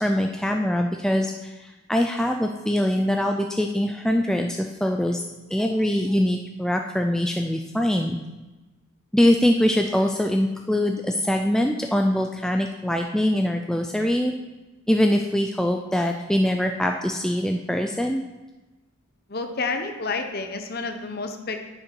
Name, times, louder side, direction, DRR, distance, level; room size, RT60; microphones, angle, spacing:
voice 1, 0.0-5.2 5.5-8.2 9.1-14.3 14.9-18.2, left 1 dB, 5° left, 3 dB, 0.3 m, -23 dB
voice 2, 19.3-21.7, left 3 dB, 45° left, 6 dB, 0.9 m, -30 dB
10.5 x 6.5 x 4.5 m, 1.1 s
head